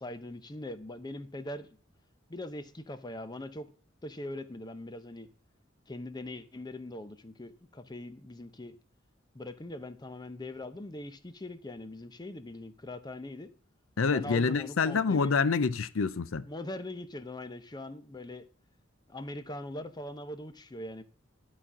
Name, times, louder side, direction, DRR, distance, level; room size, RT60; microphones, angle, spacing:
voice 1, 0.0-1.7 2.3-3.7 4.0-5.3 5.9-8.8 9.3-13.5 14.1-15.3 16.4-18.5 19.1-21.0, left 1 dB, 20° left, 0.6 m, -41 dB
voice 2, 14.0-16.5, left 5 dB, 85° left, 0.6 m, -27 dB
11.5 x 4.2 x 6.0 m
head